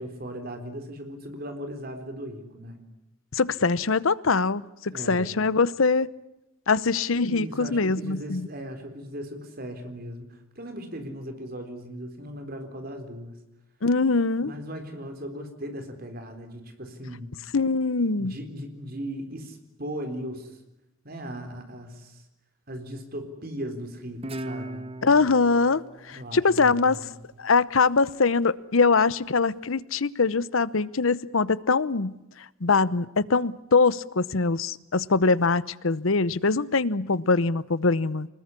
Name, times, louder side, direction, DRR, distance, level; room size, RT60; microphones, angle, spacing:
voice 1, 0.0-2.8 4.9-5.4 7.3-13.4 14.4-17.3 18.1-20.6 21.0-22.2 22.7-24.8 26.1-27.1, equal, 45° right, 6 dB, 4.0 m, -38 dB
voice 2, 3.3-6.1 6.7-8.5 13.8-14.5 17.5-18.4 25.0-25.8 26.1-27.0 27.4-32.2 32.6-38.3, left 4 dB, 80° left, 18 dB, 0.9 m, -23 dB
Guitar, 24.2-27.5, right 1 dB, 30° right, 1.1 m, -39 dB
25.5 x 20.5 x 9.9 m, 0.92 s
head